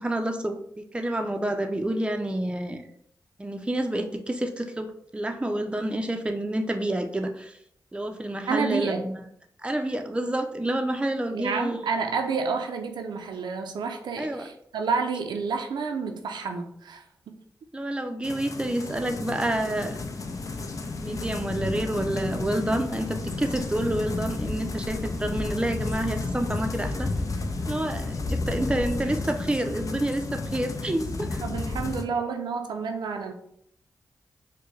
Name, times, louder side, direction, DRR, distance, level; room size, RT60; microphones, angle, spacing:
voice 1, 0.0-2.8 3.4-7.6 7.9-9.1 9.6-11.8 14.2-14.5 17.7-20.0 21.0-27.1 27.7-31.4, right 1 dB, 15° right, 5 dB, 0.5 m, -28 dB
voice 2, 8.5-9.0 11.3-17.3 31.4-33.3, right 5 dB, 85° right, 4 dB, 0.4 m, -30 dB
sound 1, 18.2-32.0, left 3 dB, 50° left, 0.5 m, -32 dB
sound 2, 20.2-28.2, left 1 dB, 75° left, 0.9 m, -45 dB
4.4 x 2.2 x 3.1 m, 0.70 s
cardioid pair, 50°, 7 cm